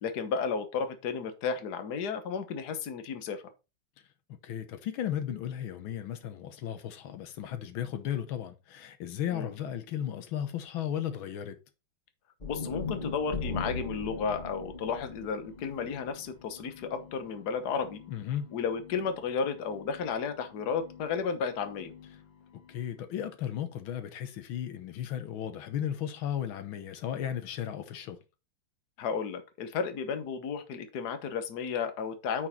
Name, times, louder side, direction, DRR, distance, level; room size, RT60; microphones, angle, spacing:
voice 1, 0.0-3.4 9.3-9.5 12.4-18.0 18.5-21.9 29.0-32.5, left 6 dB, 55° left, 1.6 m, -33 dB
voice 2, 4.4-11.6 18.1-18.5 22.7-28.2, left 10 dB, 90° left, 1.7 m, -35 dB
sound 1, 12.4-16.6, left 3 dB, 25° left, 1.6 m, -38 dB
sound 2, 13.4-23.1, left 8 dB, 70° left, 1.8 m, -53 dB
9.4 x 4.7 x 4.2 m
omnidirectional pair, 2.2 m